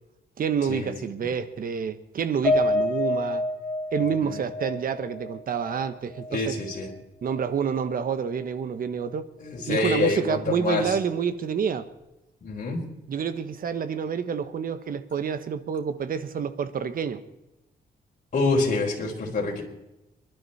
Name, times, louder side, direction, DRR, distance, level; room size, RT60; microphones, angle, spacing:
voice 1, 0.4-3.4 3.9-6.5 7.2-9.3 9.7-11.9 13.1-17.2, right 7 dB, 55° right, 11 dB, 1.3 m, -28 dB
Piano, 2.4-6.9 7.3-7.4 7.8-8.0, left 2 dB, 5° left, 5.0 m, -28 dB
voice 2, 6.3-6.9 9.4-11.0 12.4-12.8 18.3-19.6, left 3 dB, 50° left, -2 dB, 4.2 m, -26 dB
27.5 x 12.0 x 4.3 m, 0.95 s
cardioid pair, 120°, 17 cm